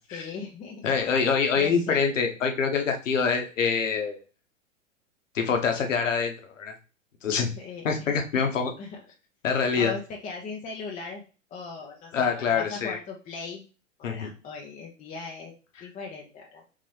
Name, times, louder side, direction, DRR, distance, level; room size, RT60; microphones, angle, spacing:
voice 1, 0.1-1.1 1.5-2.1 7.6-8.4 8.8-9.0 9.7-11.2 11.5-13.6 14.0-15.5 15.8-16.6, left 4 dB, 20° left, -1 dB, 0.8 m, -39 dB
voice 2, 0.8-4.2 5.3-6.7 7.2-7.5 7.8-8.7 9.4-9.9 12.1-13.0 14.0-14.3, left 5 dB, 70° left, 4 dB, 1.1 m, -25 dB
4.0 x 3.7 x 3.3 m, 0.34 s
figure-of-eight pair, 105°, 39 cm